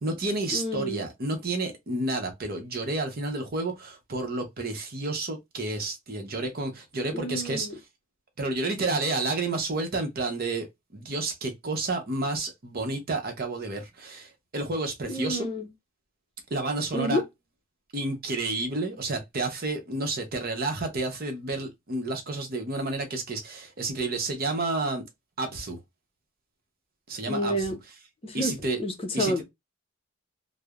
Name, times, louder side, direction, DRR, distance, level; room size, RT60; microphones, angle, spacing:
voice 1, 0.0-7.7 8.4-10.7 10.9-15.5 16.5-17.2 17.9-25.0 25.4-25.8 27.1-27.7 28.3-28.8 29.1-29.3, right 2 dB, 50° right, 0.7 m, -30 dB
voice 2, 0.5-1.0 7.1-7.7 15.1-15.7 16.9-17.2 27.3-27.8 28.2-29.4, equal, 30° left, 0.6 m, -29 dB
3.1 x 2.0 x 2.3 m
head